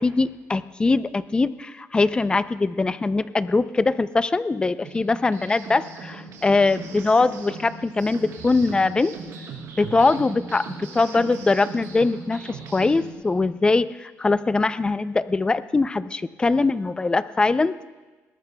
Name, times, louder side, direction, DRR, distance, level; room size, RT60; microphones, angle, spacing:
voice 1, 0.0-9.1 9.8-17.9, left 3 dB, 15° left, 14 dB, 0.4 m, -22 dB
sound 1, 4.8-13.1, right 5 dB, 80° right, 3.7 m, -39 dB
21.0 x 18.5 x 2.2 m, 1.2 s
cardioid pair, 135°, 6 cm